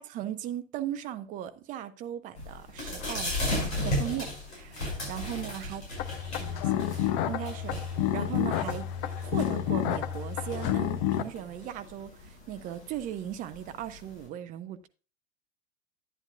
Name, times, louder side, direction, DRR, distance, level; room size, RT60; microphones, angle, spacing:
voice 1, 0.0-4.8 5.1-5.8 6.4-6.9 7.3-8.9 9.2-14.9, right 11 dB, 20° right, 0.6 m, -38 dB
sound 1, 2.4-14.2, left 1 dB, 65° left, 6.0 m, -37 dB
sound 2, 6.0-11.2, left 11 dB, 35° left, 0.7 m, -29 dB
10.5 x 9.8 x 2.4 m
figure-of-eight pair, 90°, 37 cm